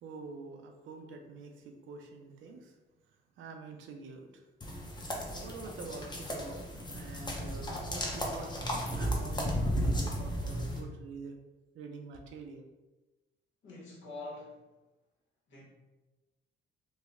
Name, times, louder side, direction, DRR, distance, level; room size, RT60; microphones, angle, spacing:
voice 1, 0.0-2.8 3.1-4.4 5.3-11.4 11.7-12.6, right 4 dB, 80° right, 4 dB, 0.5 m, -46 dB
sound 1, 4.6-10.8, equal, 20° left, 0.7 m, -34 dB
voice 2, 13.6-14.7 15.5-15.6, left 2 dB, 70° left, -4 dB, 1.2 m, -45 dB
3.1 x 2.1 x 3.5 m, 1.1 s
cardioid pair, 90°, 20 cm